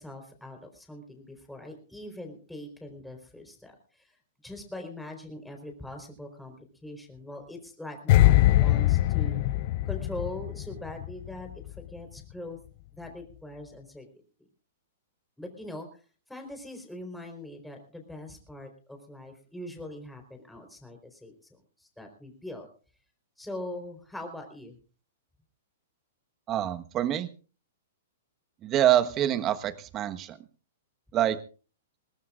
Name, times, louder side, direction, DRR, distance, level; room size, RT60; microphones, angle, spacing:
voice 1, 0.0-4.2 4.4-9.4 9.8-11.5 11.8-12.6 12.9-14.1 15.4-15.9 16.3-21.3 21.8-22.7 23.4-24.7, left 1 dB, 5° left, 3 dB, 4.2 m, -42 dB
sound 1, 8.1-11.3 11.5-11.8, left 15 dB, 50° left, 0.7 m, -22 dB
voice 2, 26.5-27.3 28.6-30.4 31.1-31.4, right 11 dB, 30° right, 10 dB, 1.3 m, -25 dB
22.5 x 18.5 x 2.5 m, 0.37 s
hypercardioid pair, 115°, 0 cm